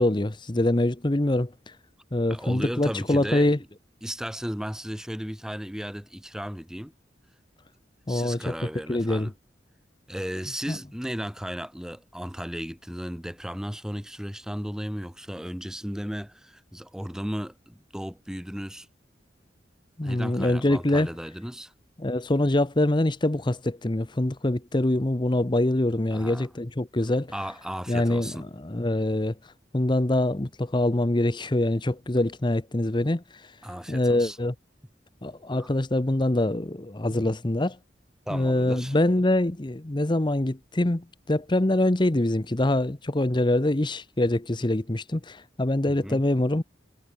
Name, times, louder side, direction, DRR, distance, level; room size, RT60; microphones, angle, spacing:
voice 1, 0.0-1.7 2.1-3.6 8.1-8.5 8.9-9.3 10.7-10.8 20.0-21.1 22.0-27.3 27.9-29.3 29.7-33.5 33.9-34.5 35.2-37.8 38.3-46.6, left 1 dB, 25° left, 0.9 m, -24 dB
voice 2, 2.3-3.6 4.0-6.9 8.1-9.3 10.1-18.9 20.0-21.7 26.1-26.5 27.3-28.4 33.6-34.4 35.6-35.7 38.3-39.0 45.9-46.2, equal, 5° right, 1.2 m, -35 dB
head